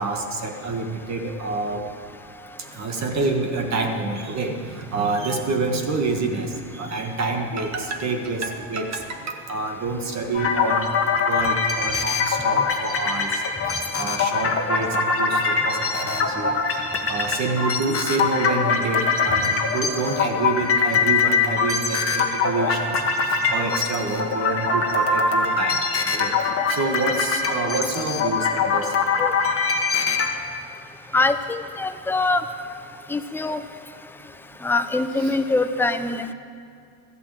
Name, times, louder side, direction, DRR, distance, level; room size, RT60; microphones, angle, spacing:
voice 1, 0.0-1.8 2.7-10.9 11.3-13.4 13.7-16.8 17.1-23.0 23.3-25.8 26.1-26.3 26.7-28.9 35.1-35.4, right 3 dB, 35° right, 3 dB, 1.6 m, -27 dB
sound 1, 10.3-30.3, left 4 dB, 30° left, 1.6 m, -23 dB
voice 2, 31.1-32.4 33.1-33.6 34.6-36.3, left 2 dB, 5° left, 9 dB, 0.4 m, -23 dB
14.0 x 8.3 x 7.7 m, 2.3 s
supercardioid pair, 105°, 48 cm